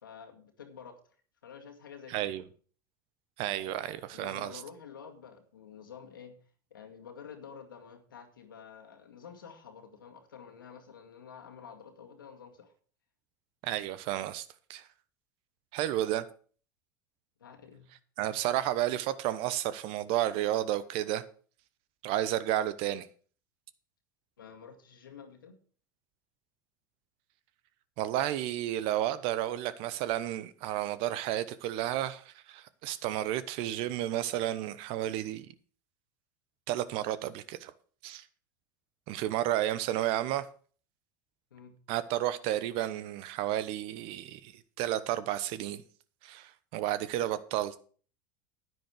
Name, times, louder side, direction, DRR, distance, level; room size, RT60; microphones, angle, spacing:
voice 1, 0.0-1.0 1.4-2.3 3.6-3.8 4.1-6.4 6.7-12.7 17.4-17.9 24.4-25.6 41.5-41.8, left 7 dB, 90° left, 2.1 m, -49 dB
voice 2, 2.1-2.4 3.4-4.6 13.6-14.8 15.7-16.2 18.2-21.2 22.0-23.1 28.0-35.5 36.7-37.7 38.0-38.2 39.1-40.4 41.9-44.5 44.8-45.8 46.2-47.7, right 13 dB, 60° right, 1.0 m, -32 dB
10.0 x 9.7 x 4.9 m
hypercardioid pair, 85°, 11 cm